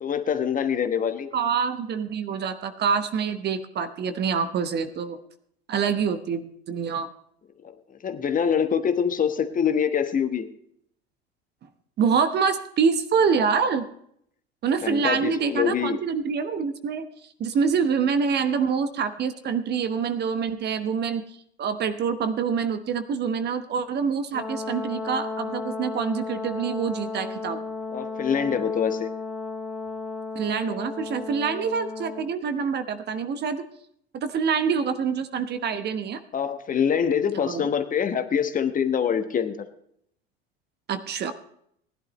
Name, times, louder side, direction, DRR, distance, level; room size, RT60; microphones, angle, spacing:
voice 1, 0.0-1.3 8.0-10.5 14.8-16.0 27.9-29.1 36.3-39.6, left 7 dB, 25° left, 8 dB, 1.2 m, -25 dB
voice 2, 1.3-5.2 5.7-7.1 12.0-13.9 14.6-17.1 17.4-21.2 21.6-27.6 30.3-33.6 34.1-36.2 37.4-37.7 40.9-41.3, right 6 dB, 30° right, 10 dB, 1.1 m, -26 dB
Brass instrument, 24.3-32.3, left 3 dB, ahead, 2.9 m, -34 dB
19.5 x 11.0 x 3.1 m, 0.69 s
figure-of-eight pair, 75°, 31 cm